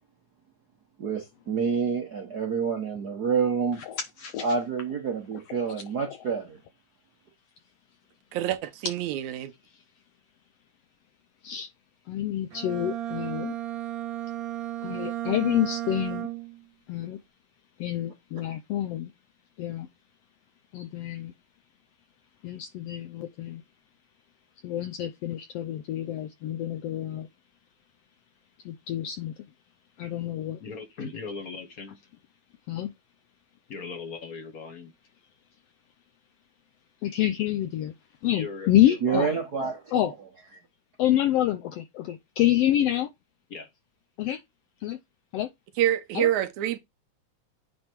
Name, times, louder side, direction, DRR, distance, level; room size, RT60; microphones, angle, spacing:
voice 1, 1.0-3.8 4.4-6.6 39.0-40.1, right 6 dB, 60° right, 1.0 m, -28 dB
voice 2, 3.9-4.4 11.4-11.7 12.1-13.5 14.8-16.3 16.9-17.2 17.8-19.1 19.6-19.9 20.7-21.3 22.4-23.6 24.6-27.3 28.6-29.3 30.0-30.6 32.7-32.9 37.0-37.9 38.2-39.3 39.9-40.1 41.0-43.1 44.2-44.4 44.8-45.0 45.3-45.5 46.1-46.3, left 13 dB, 80° left, 1.4 m, -27 dB
voice 3, 8.3-9.5 45.8-46.8, right 12 dB, 80° right, 2.2 m, -26 dB
Bowed string instrument, 12.5-16.6, right 13 dB, 40° right, 1.4 m, -34 dB
voice 4, 30.6-31.9 33.7-34.9 38.3-39.7 43.5-43.7, left 4 dB, 55° left, 0.9 m, -38 dB
9.5 x 3.3 x 4.5 m
omnidirectional pair, 3.4 m